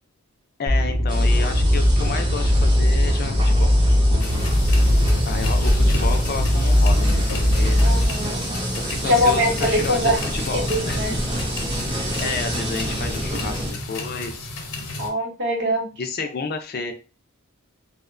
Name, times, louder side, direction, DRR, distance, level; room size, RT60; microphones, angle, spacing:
voice 1, 0.6-3.8 4.1-4.4 5.2-7.8 8.7-11.0 11.9-13.6 13.9-14.5 16.0-16.9, left 4 dB, 45° left, 6 dB, 0.3 m, -31 dB
sound 1, 0.7-8.1, left 1 dB, 85° right, 0.8 m, -19 dB
sound 2, 1.1-13.7, equal, 20° right, 0.5 m, -28 dB
sound 3, 4.2-15.1, left 2 dB, 90° left, 0.6 m, -34 dB
voice 2, 7.8-8.5 9.1-10.2 10.5-11.2 15.0-15.9, equal, 50° right, 1 dB, 0.7 m, -22 dB
2.8 x 2.1 x 2.4 m, 0.32 s
head